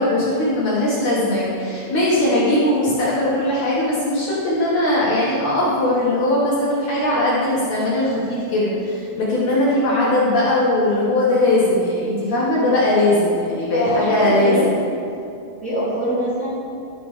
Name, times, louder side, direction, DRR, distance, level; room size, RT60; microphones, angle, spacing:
voice 1, 0.0-14.6, left 1 dB, 60° left, -7 dB, 2.3 m, -19 dB
voice 2, 13.7-14.6 15.6-16.5, right 1 dB, 30° right, -12 dB, 2.2 m, -23 dB
12.5 x 6.8 x 3.3 m, 2.7 s
omnidirectional pair, 4.4 m